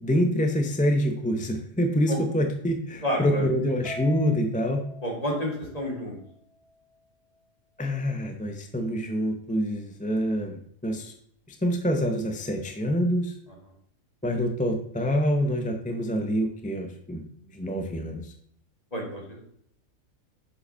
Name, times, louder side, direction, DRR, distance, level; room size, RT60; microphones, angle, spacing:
voice 1, 0.0-4.9 7.8-11.1 11.6-13.3 14.2-17.2 17.5-18.3, equal, 10° left, 4 dB, 0.6 m, -26 dB
voice 2, 3.0-3.7 5.0-6.2 18.9-19.4, equal, 25° left, -1 dB, 2.4 m, -30 dB
Harp, 3.8-6.3, left 3 dB, 50° right, 1.3 m, -42 dB
6.6 x 5.5 x 5.5 m, 0.65 s
omnidirectional pair, 1.5 m